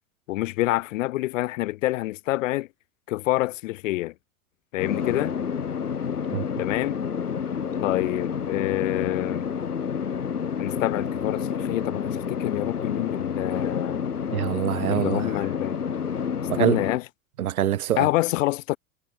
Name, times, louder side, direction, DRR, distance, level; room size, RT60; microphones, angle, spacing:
voice 1, 0.3-2.7 3.1-4.1 4.7-5.3 6.6-7.0 7.8-9.4 10.6-14.0 14.9-15.8 16.6-17.0 18.0-18.8, left 18 dB, 55° left, 3.1 m, -27 dB
sound 1, 4.8-17.0, left 7 dB, 80° left, 1.8 m, -29 dB
voice 2, 14.3-15.4 16.5-16.8 17.4-18.1, right 11 dB, 70° right, 1.3 m, -25 dB
figure-of-eight pair, 85°, 45 cm